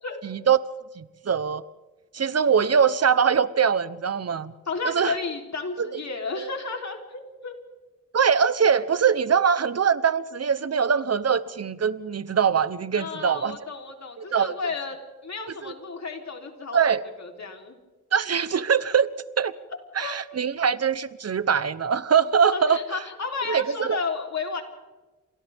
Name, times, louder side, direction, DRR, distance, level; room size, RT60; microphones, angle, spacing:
voice 1, 0.2-0.6 1.0-1.6 2.1-4.5 4.8-5.1 5.8-6.0 6.4-6.5 8.1-13.6 14.2-14.5 16.7-17.0 18.1-19.1 19.4-19.5 19.9-22.8 23.5-24.0, right 7 dB, 55° right, 15 dB, 1.0 m, -22 dB
voice 2, 4.7-7.5 12.9-17.8 20.0-20.2 22.5-24.6, left 4 dB, 65° left, 2 dB, 3.8 m, -33 dB
29.0 x 26.5 x 3.6 m, 1.2 s
cardioid pair, 75°, 29 cm